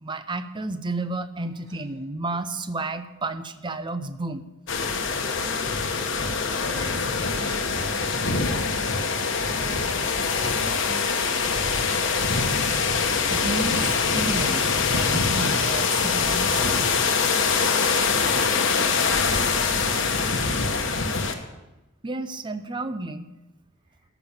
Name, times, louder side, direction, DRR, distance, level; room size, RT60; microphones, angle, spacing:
voice 1, 0.0-4.4 13.3-14.7 14.9-16.9 22.0-23.3, right 2 dB, 25° right, 11 dB, 0.6 m, -31 dB
sound 1, 4.7-21.3, left 5 dB, 65° left, 1.2 m, -24 dB
voice 2, 5.2-5.8 6.2-11.9 17.6-20.9 23.9-24.0, equal, 50° right, -3 dB, 3.8 m, -43 dB
14.0 x 6.0 x 7.1 m, 1.0 s
head